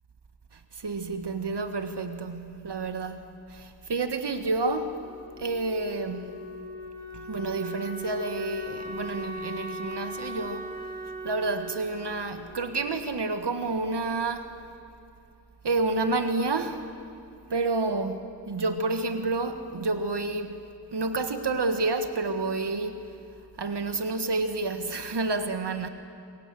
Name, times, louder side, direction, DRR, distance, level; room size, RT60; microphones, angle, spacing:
voice 1, 0.5-3.2 3.5-5.0 5.4-6.3 7.1-10.7 11.2-14.5 15.6-16.8 17.5-18.2 18.5-20.6 20.9-23.0 23.6-25.9, right 3 dB, 75° right, 1.6 m, -29 dB
Wind instrument woodwind instrument, 5.0-13.7, equal, 25° right, 4.1 m, -39 dB
28.0 x 22.5 x 7.6 m
wide cardioid pair, 90°, 41 cm